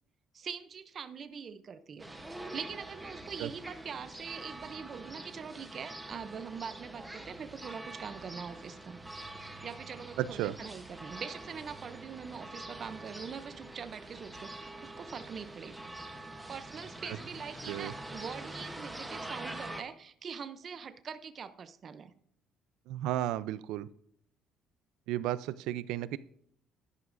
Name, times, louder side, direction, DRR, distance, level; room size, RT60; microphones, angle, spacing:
voice 1, 0.3-9.0 9.6-15.9 16.5-22.1, right 6 dB, 30° right, 11 dB, 0.5 m, -43 dB
sound 1, 2.0-19.8, right 1 dB, 5° right, 0.9 m, -45 dB
voice 2, 10.2-10.6 17.7-17.9 22.9-23.9 25.1-26.2, right 13 dB, 90° right, 17 dB, 0.4 m, -33 dB
11.0 x 11.0 x 2.5 m, 0.66 s
cardioid pair, 170°, 0 cm